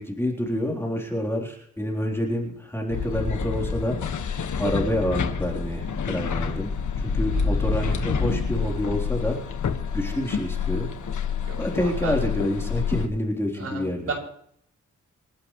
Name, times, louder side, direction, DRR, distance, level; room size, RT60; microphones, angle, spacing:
voice 1, 0.0-4.0 4.6-6.7 7.0-9.4 9.9-10.9 11.6-14.1, equal, 10° left, -1 dB, 3.8 m, -27 dB
sound 1, 2.9-13.1, left 6 dB, 85° left, 1.6 m, -28 dB
voice 2, 11.5-12.1 13.6-14.1, right 4 dB, 55° right, -1 dB, 7.0 m, -34 dB
28.0 x 11.0 x 3.2 m, 0.67 s
wide cardioid pair, 120°, 29 cm